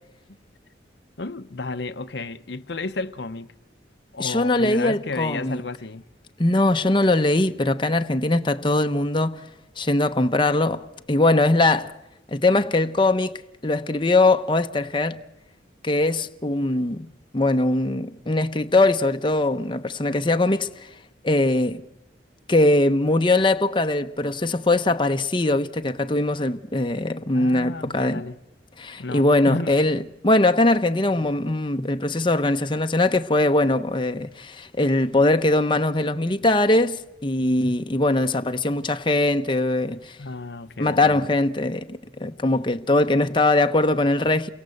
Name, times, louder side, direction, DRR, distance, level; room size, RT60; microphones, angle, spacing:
voice 1, 1.2-3.5 4.1-6.0 27.3-28.4 29.0-29.8 40.2-41.3, left 3 dB, 65° left, 0.9 m, -32 dB
voice 2, 4.2-5.6 6.4-9.4 9.8-11.9 12.3-13.3 13.6-15.2 15.8-17.1 17.3-20.7 21.2-21.8 22.5-28.2 28.8-40.2 40.8-44.5, left 2 dB, 25° left, 0.9 m, -21 dB
29.5 x 23.0 x 7.9 m
head